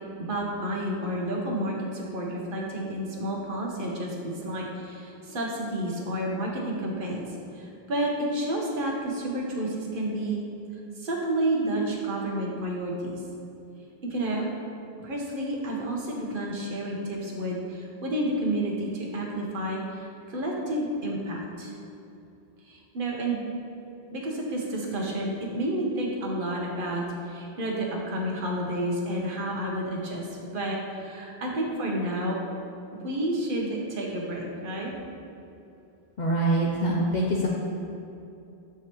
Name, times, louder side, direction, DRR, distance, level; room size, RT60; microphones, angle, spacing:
voice 1, 0.2-7.2 7.5-10.4 11.0-13.2 14.0-14.4 15.0-21.7 22.7-23.4 24.1-30.3 30.5-32.4 32.9-34.9, right 1 dB, 60° right, -1 dB, 1.0 m, -30 dB
voice 2, 36.2-37.5, right 1 dB, 55° left, -3 dB, 0.6 m, -24 dB
7.0 x 4.7 x 3.0 m, 2.7 s
omnidirectional pair, 1.1 m